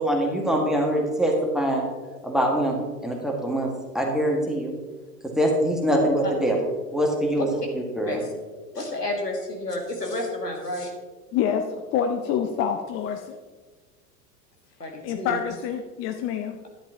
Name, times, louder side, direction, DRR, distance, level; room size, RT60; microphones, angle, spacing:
voice 1, 0.0-1.9 2.2-3.7 3.9-4.7 5.4-6.6 6.9-7.5 7.7-8.2, right 1 dB, ahead, 0 dB, 1.7 m, -23 dB
voice 2, 8.7-10.9 14.8-15.4, left 1 dB, 90° left, 1 dB, 1.8 m, -30 dB
voice 3, 11.3-13.4 15.0-16.6, left 8 dB, 30° left, 5 dB, 0.6 m, -27 dB
11.0 x 10.0 x 2.9 m, 1.3 s
figure-of-eight pair, 85°, 46 cm